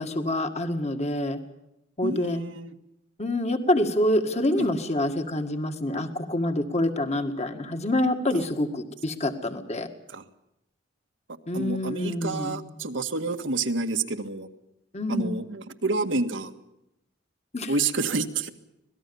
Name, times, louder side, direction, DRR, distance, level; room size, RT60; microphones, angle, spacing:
voice 1, 0.0-1.4 2.0-2.4 3.2-9.9 11.5-12.6 14.9-15.4 17.5-17.7, left 1 dB, 35° left, 7 dB, 2.0 m, -26 dB
voice 2, 2.0-2.7 4.6-4.7 10.1-10.2 11.5-14.5 15.1-16.5 17.7-18.5, right 3 dB, 85° right, 6 dB, 1.8 m, -28 dB
25.5 x 18.5 x 7.1 m, 0.85 s
head